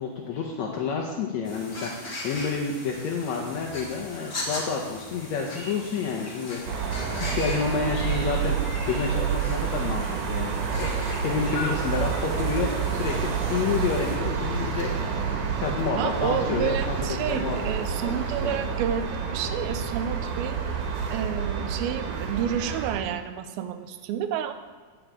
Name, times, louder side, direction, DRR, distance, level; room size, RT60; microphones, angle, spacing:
voice 1, 0.0-6.8 7.1-14.9 15.6-17.6 18.0-18.1 18.4-18.6, left 5 dB, 80° left, -1 dB, 1.6 m, -29 dB
sound 1, 1.4-14.2, left 2 dB, 30° left, 1.5 m, -38 dB
sound 2, 6.7-23.0, right 6 dB, 70° right, 2.2 m, -29 dB
voice 2, 16.0-20.6 21.1-24.5, right 9 dB, 90° right, 10 dB, 2.5 m, -30 dB
9.1 x 7.8 x 4.7 m, 1.6 s
omnidirectional pair, 4.2 m